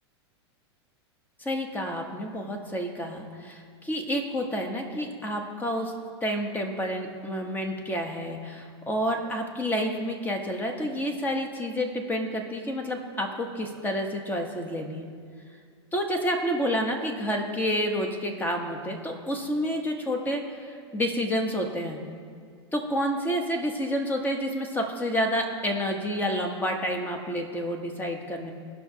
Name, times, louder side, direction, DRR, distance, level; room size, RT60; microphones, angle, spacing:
voice 1, 1.4-5.9 6.2-15.1 15.9-22.0 22.7-28.5, equal, 15° left, 3 dB, 1.0 m, -29 dB
17.5 x 5.8 x 2.8 m, 2.2 s
hypercardioid pair, 125°, 14 cm